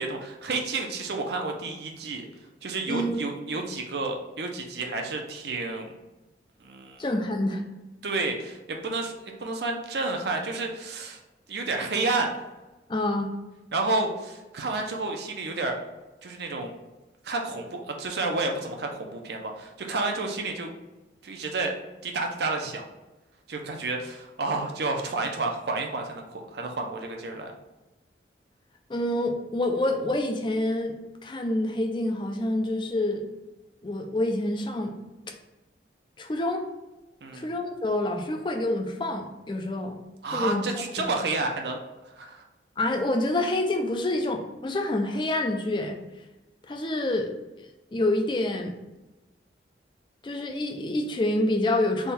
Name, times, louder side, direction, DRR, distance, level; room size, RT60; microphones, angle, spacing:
voice 1, 0.0-2.3 2.6-5.9 6.6-7.0 8.0-11.2 11.5-12.3 13.7-15.8 16.2-16.7 17.2-20.7 21.2-21.7 22.0-22.8 23.5-27.5 37.2-37.5 40.2-42.4, right 3 dB, 70° right, 2 dB, 0.6 m, -30 dB
voice 2, 2.9-3.2 7.0-7.6 12.9-13.3 28.9-33.3 33.8-35.0 36.2-36.6 37.3-40.0 40.3-40.6 41.0-41.1 42.8-46.0 46.7-47.3 47.6-48.8 50.2-52.1, left 1 dB, 25° left, 4 dB, 0.4 m, -27 dB
3.5 x 2.3 x 4.2 m, 1.1 s
head